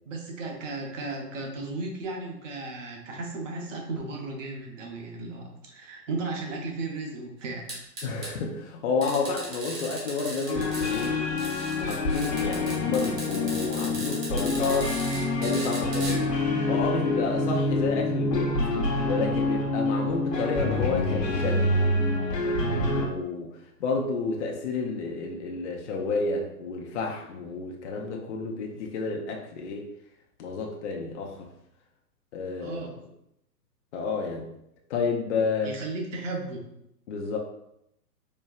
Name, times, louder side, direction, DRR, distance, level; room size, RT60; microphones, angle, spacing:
voice 1, 0.1-7.7 32.6-32.9 35.6-36.7, right 3 dB, 50° right, 1 dB, 1.0 m, -35 dB
sound 1, 7.7-8.3 9.0-11.1 11.4-16.1, right 2 dB, 25° right, 0.8 m, -37 dB
voice 2, 8.0-11.2 11.7-16.2 16.7-18.6 19.0-21.8 22.3-23.5 23.8-29.9 30.4-31.5 32.3-32.8 33.9-34.5 34.9-35.8 37.1-37.4, left 4 dB, 45° left, 1 dB, 0.5 m, -30 dB
sound 2, 10.5-23.1, left 2 dB, 85° left, 1.0 m, -27 dB
4.3 x 2.3 x 2.4 m, 0.79 s
hypercardioid pair, 130°, 49 cm